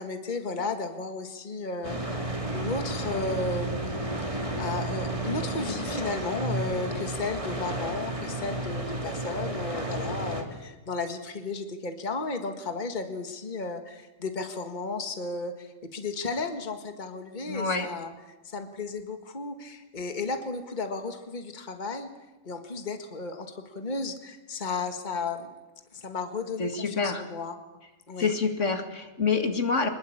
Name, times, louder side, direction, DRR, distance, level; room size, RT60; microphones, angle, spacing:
voice 1, 0.0-3.8 4.6-18.1 18.4-22.1 22.4-25.5 25.9-27.6 28.1-28.3, left 3 dB, 35° left, 6 dB, 1.8 m, -34 dB
sound 1, 1.8-10.4, right 1 dB, 25° right, 3.3 m, -32 dB
voice 2, 17.5-17.9 26.6-27.2 28.2-29.9, left 4 dB, 65° left, 6 dB, 2.4 m, -27 dB
24.5 x 21.5 x 8.7 m, 1.0 s
omnidirectional pair, 1.3 m